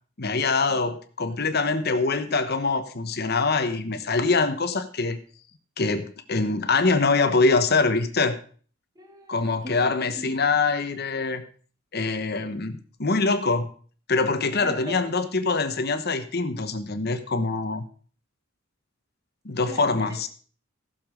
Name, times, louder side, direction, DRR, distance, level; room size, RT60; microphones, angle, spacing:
voice 1, 0.2-5.2 5.8-8.4 9.3-11.4 11.9-13.7 14.1-17.8 19.4-20.3, left 3 dB, 50° left, 1.1 m, -24 dB
voice 2, 1.3-2.0 9.0-10.6 14.6-15.1 19.7-20.3, right 1 dB, 20° right, 1.7 m, -41 dB
15.5 x 7.0 x 5.1 m
head